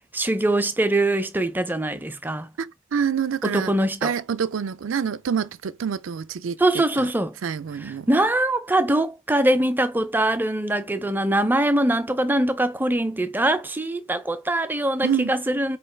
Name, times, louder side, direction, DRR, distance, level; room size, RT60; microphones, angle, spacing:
voice 1, 0.1-2.5 3.4-4.1 6.6-7.3 7.8-15.8, right 1 dB, 10° right, 0.4 m, -23 dB
voice 2, 2.6-3.7 4.0-6.6 7.0-7.1 7.4-8.1 15.0-15.3, right 7 dB, 65° right, 0.4 m, -26 dB
4.5 x 2.9 x 3.2 m
head